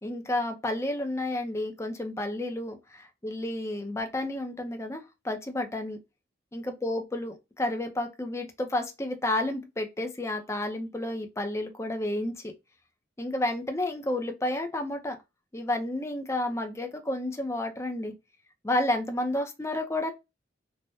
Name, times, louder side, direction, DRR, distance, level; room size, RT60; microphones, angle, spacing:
voice 1, 0.0-6.0 6.5-12.5 13.2-15.2 15.5-18.1 18.6-20.1, left 1 dB, 15° left, 0.5 m, -31 dB
3.4 x 2.1 x 2.7 m
head